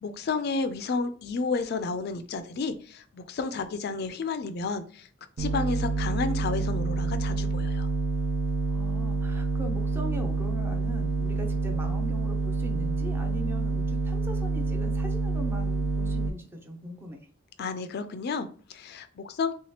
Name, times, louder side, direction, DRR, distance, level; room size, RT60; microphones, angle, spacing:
voice 1, 0.0-5.1 5.4-7.9 17.6-19.5, left 4 dB, 55° left, 10 dB, 0.4 m, -31 dB
sound 1, 5.4-16.3, right 4 dB, 90° right, 0.4 m, -28 dB
voice 2, 8.7-17.2, left 1 dB, 10° right, 3 dB, 0.6 m, -40 dB
3.4 x 2.9 x 3.1 m, 0.43 s
head